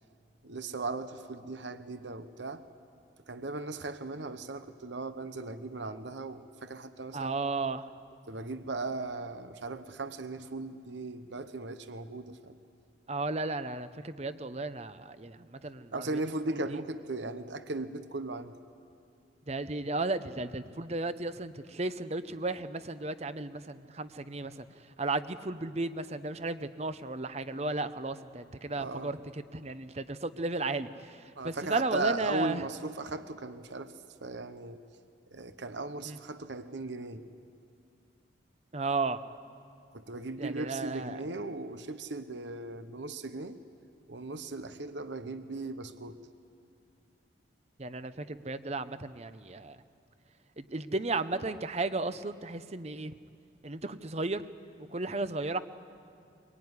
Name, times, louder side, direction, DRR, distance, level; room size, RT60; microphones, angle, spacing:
voice 1, 0.4-2.6 3.3-7.3 8.3-12.6 15.9-18.5 28.8-29.2 31.4-33.9 34.2-34.8 35.3-37.3 39.9-43.6 44.1-46.2, right 2 dB, 70° right, 11 dB, 1.0 m, -37 dB
voice 2, 7.1-7.9 13.1-16.2 16.5-16.8 19.5-24.7 25.0-32.6 36.1-36.2 38.7-39.2 40.4-41.2 47.8-49.8 50.6-53.1 53.6-54.4 54.9-55.6, right 3 dB, 35° right, 12 dB, 0.8 m, -34 dB
23.5 x 21.5 x 9.7 m, 2.4 s
head